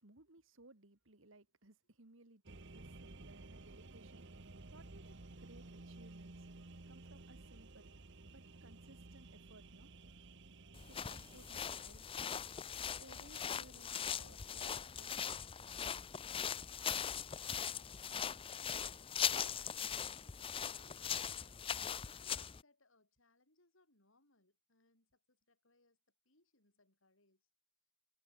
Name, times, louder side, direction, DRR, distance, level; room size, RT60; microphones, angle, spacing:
voice 1, 0.0-4.3 4.7-6.4 6.9-7.9 8.3-9.9 10.8-12.5 12.9-15.3, right 2 dB, 75° right, 2.4 m, -62 dB
sound 1, 2.4-11.7, right 2 dB, 60° right, 1.3 m, -54 dB
sound 2, 10.7-22.6, left 8 dB, 25° left, 0.5 m, -40 dB
voice 2, 17.7-18.4 20.5-26.0 26.2-27.5, left 2 dB, 75° left, 6.8 m, -74 dB
head